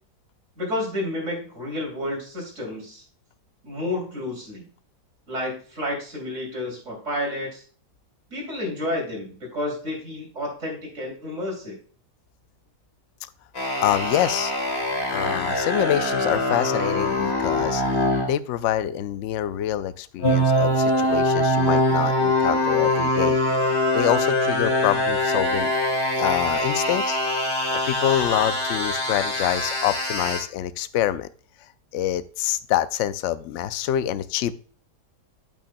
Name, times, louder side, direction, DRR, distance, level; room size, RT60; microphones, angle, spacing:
voice 1, 0.6-3.0 3.6-4.6 5.3-7.6 8.3-11.8, left 1 dB, 45° right, -1 dB, 3.2 m, -30 dB
sound 1, 13.6-18.3 20.2-30.4, left 1 dB, 35° left, 2.5 m, -23 dB
voice 2, 13.8-14.5 15.1-17.8 18.3-23.4 23.9-25.7 26.2-27.2 27.8-31.3 31.9-34.5, left 12 dB, 80° left, 13 dB, 0.6 m, -26 dB
8.8 x 8.6 x 2.2 m, 0.43 s
omnidirectional pair, 1.8 m